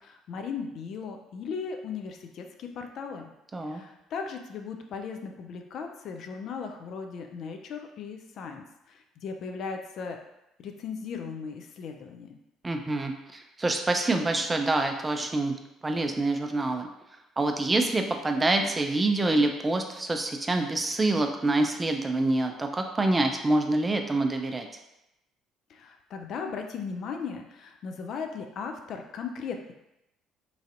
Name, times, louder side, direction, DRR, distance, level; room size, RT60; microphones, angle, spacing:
voice 1, 0.0-3.3 3.7-10.2 10.6-12.4 25.7-29.7, left 5 dB, 60° left, 4 dB, 0.3 m, -37 dB
voice 2, 12.6-15.5 15.8-16.9 17.4-24.7, right 2 dB, 25° right, 4 dB, 0.4 m, -26 dB
3.1 x 2.6 x 2.5 m, 0.88 s
hypercardioid pair, 55°, 0 cm